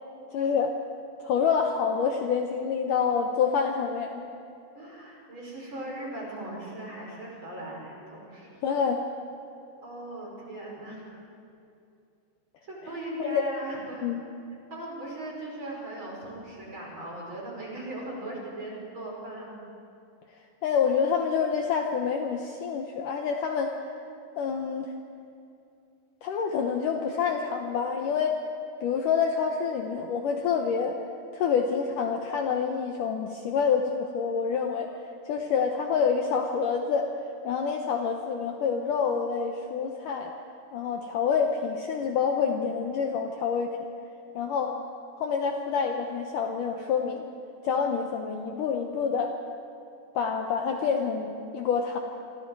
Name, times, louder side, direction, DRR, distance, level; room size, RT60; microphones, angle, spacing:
voice 1, 0.3-0.8 1.2-4.2 8.6-9.0 13.2-13.4 14.0-14.2 20.6-23.7 24.4-24.9 26.2-28.4 28.8-31.0 31.3-34.9 35.3-37.1 37.4-40.3 40.7-43.8 44.4-44.8 45.2-47.3 47.6-49.3 50.1-52.0, left 6 dB, 70° left, 3 dB, 2.0 m, -27 dB
voice 2, 4.8-8.5 9.8-11.0 12.7-14.1 14.7-19.5, right 1 dB, 30° right, -3 dB, 5.5 m, -38 dB
28.0 x 24.5 x 4.8 m, 2.6 s
omnidirectional pair, 5.0 m